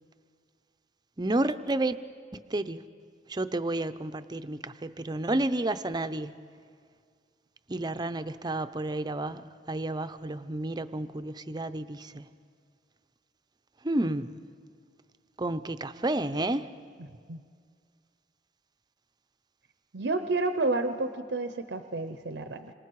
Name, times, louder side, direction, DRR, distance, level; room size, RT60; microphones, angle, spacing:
voice 1, 1.2-2.0 2.5-2.8 3.3-6.3 7.7-12.3 13.8-14.3 15.4-16.7, right 2 dB, 25° right, 11 dB, 0.6 m, -31 dB
voice 2, 19.9-22.7, right 2 dB, 85° right, 9 dB, 0.8 m, -30 dB
28.0 x 25.5 x 4.8 m, 2.1 s
head